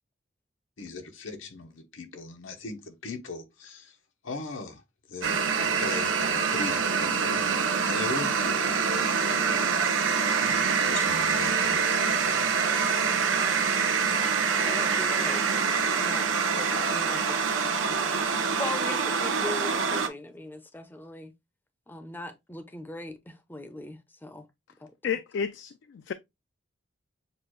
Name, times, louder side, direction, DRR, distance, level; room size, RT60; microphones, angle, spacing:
voice 1, 0.8-4.0 4.2-4.8 5.1-12.0, left 3 dB, 85° left, 1.0 m, -39 dB
sound 1, 5.2-20.1, right 5 dB, 85° right, 0.7 m, -25 dB
voice 2, 14.5-15.4 15.9-18.2 18.6-21.3 21.9-24.4 24.8-24.9, left 2 dB, 10° left, 0.5 m, -40 dB
voice 3, 25.0-26.1, left 7 dB, 60° left, 0.3 m, -31 dB
6.7 x 2.3 x 3.1 m
head